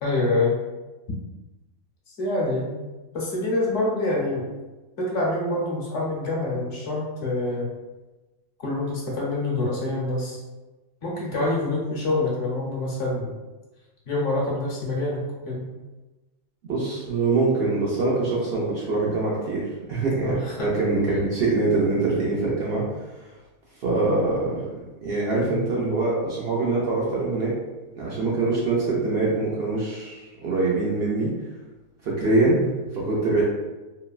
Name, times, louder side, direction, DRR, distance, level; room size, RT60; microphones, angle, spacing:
voice 1, 0.0-0.6 2.1-2.7 3.1-4.5 5.0-7.7 8.6-10.4 11.0-13.3 14.1-15.7 20.2-20.7 25.4-25.6 32.4-32.7, left 2 dB, 60° left, -4 dB, 1.1 m, -26 dB
voice 2, 16.6-20.3 20.6-22.8 23.8-27.6 27.9-31.3 32.0-32.6 32.9-33.4, right 3 dB, 60° right, -5 dB, 0.7 m, -24 dB
3.1 x 2.1 x 2.3 m, 1.1 s
omnidirectional pair, 1.5 m